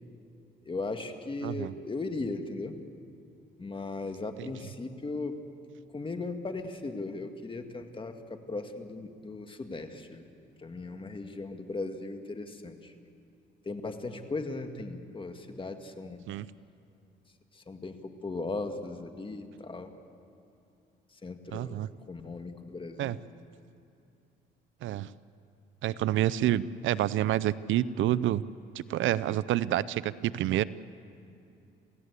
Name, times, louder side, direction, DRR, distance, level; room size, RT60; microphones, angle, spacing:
voice 1, 0.6-2.8 3.6-5.4 5.9-10.2 10.6-12.9 13.7-16.2 17.5-19.9 21.2-21.8 22.1-23.1, left 3 dB, 25° left, 6 dB, 1.9 m, -37 dB
voice 2, 1.4-1.7 16.3-16.5 21.5-21.9 23.0-23.2 24.8-25.1 25.8-28.4 28.8-30.6, right 13 dB, 75° right, 18 dB, 0.6 m, -28 dB
27.5 x 16.5 x 8.2 m, 2.6 s
cardioid pair, 90°, 20 cm